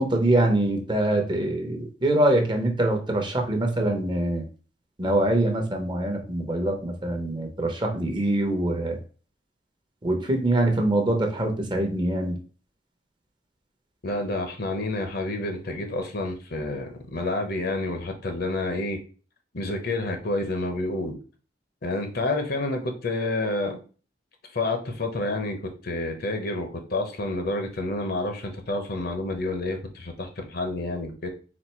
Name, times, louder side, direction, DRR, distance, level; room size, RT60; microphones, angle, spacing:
voice 1, 0.0-4.4 5.0-9.0 10.0-12.4, right 1 dB, 25° right, 3 dB, 0.8 m, -24 dB
voice 2, 14.0-19.0 19.5-21.2 21.8-23.8 24.5-31.3, left 2 dB, 60° left, 5 dB, 0.9 m, -29 dB
4.2 x 2.5 x 4.4 m, 0.38 s
head